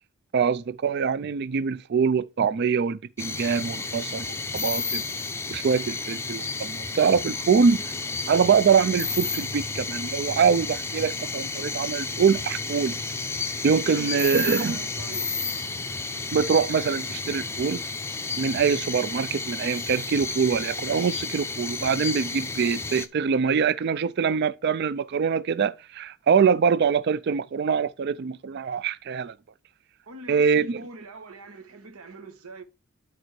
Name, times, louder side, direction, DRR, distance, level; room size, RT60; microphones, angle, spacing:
voice 1, 0.3-5.0 5.5-7.9 8.3-13.0 13.6-14.8 16.3-17.8 18.4-29.3 30.3-30.8, right 6 dB, 50° right, 0.4 m, -24 dB
sound 1, 3.2-23.1, left 4 dB, 10° left, 0.5 m, -32 dB
voice 2, 13.8-15.3 30.1-32.6, right 3 dB, 85° right, 1.2 m, -43 dB
11.5 x 4.3 x 3.2 m
head